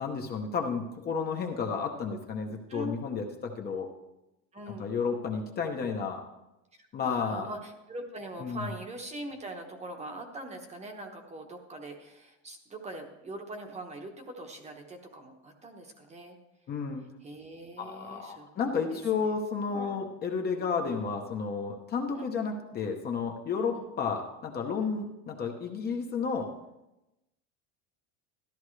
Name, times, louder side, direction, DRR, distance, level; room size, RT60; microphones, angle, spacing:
voice 1, 0.0-3.9 4.8-6.2 6.9-7.5 8.4-8.7 16.7-17.0 17.8-26.5, left 5 dB, 25° left, 3 dB, 0.9 m, -32 dB
voice 2, 4.5-4.9 6.8-16.4 17.2-18.5 18.7-19.3 19.7-20.0 22.1-22.3 23.7-23.8, right 1 dB, 20° right, 4 dB, 1.1 m, -42 dB
13.5 x 12.0 x 3.2 m, 0.95 s
cardioid pair, 160°, 36 cm